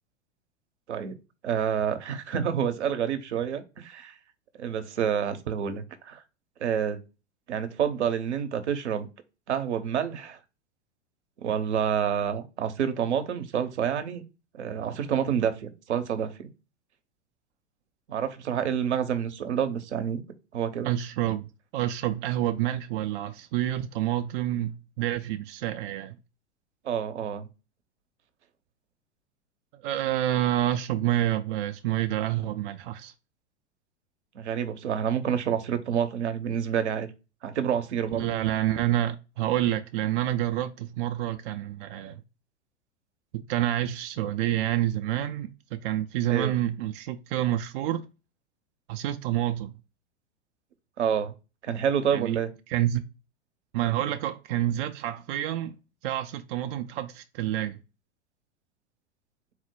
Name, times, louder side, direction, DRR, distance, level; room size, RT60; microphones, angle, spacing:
voice 1, 1.4-4.2 4.6-6.2 6.6-7.0 7.5-9.1 9.5-10.4 11.4-14.2 14.5-16.5 18.1-20.2 20.5-20.9 26.8-27.5 34.3-37.1 37.4-38.3 46.3-46.5 51.0-51.3 51.6-52.5, right 8 dB, 75° right, 0.7 m, -28 dB
voice 2, 20.8-21.5 21.7-26.2 29.7-33.1 38.1-42.2 43.3-48.0 48.9-49.8 52.1-52.4 52.7-53.0 53.7-55.7 56.0-57.8, right 13 dB, 50° right, 0.4 m, -28 dB
4.0 x 2.1 x 4.4 m
hypercardioid pair, 95°, 35 cm